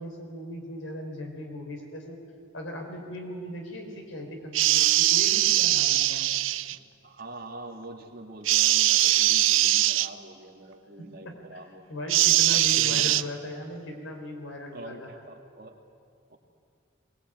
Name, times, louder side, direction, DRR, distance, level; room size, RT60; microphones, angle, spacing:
voice 1, 0.0-2.2 2.5-6.3 10.9-11.6 11.9-15.1, left 1 dB, 75° left, 2 dB, 4.4 m, -38 dB
sound 1, 4.5-6.8 8.5-10.1 12.1-13.2, right 14 dB, 80° right, 0.6 m, -21 dB
voice 2, 7.0-12.0 12.5-13.3 14.7-15.8 16.3-16.4, right 1 dB, 50° right, 3 dB, 2.2 m, -44 dB
22.5 x 19.5 x 9.3 m, 2.3 s
head